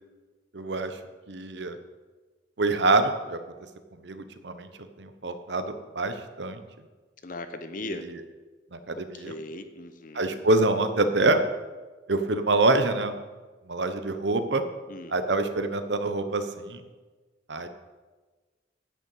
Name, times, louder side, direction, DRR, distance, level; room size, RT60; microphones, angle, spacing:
voice 1, 0.5-1.0 1.3-1.8 2.6-3.4 4.0-4.7 5.0-6.6 7.8-8.2 8.7-9.3 10.1-11.4 12.1-13.1 13.7-14.6 15.1-16.8 17.5-17.7, right 2 dB, 70° right, 9 dB, 1.0 m, -26 dB
voice 2, 7.2-8.1 8.9-10.4 14.9-15.2, left 2 dB, 45° left, 9 dB, 0.9 m, -38 dB
10.0 x 6.8 x 8.4 m, 1.3 s
head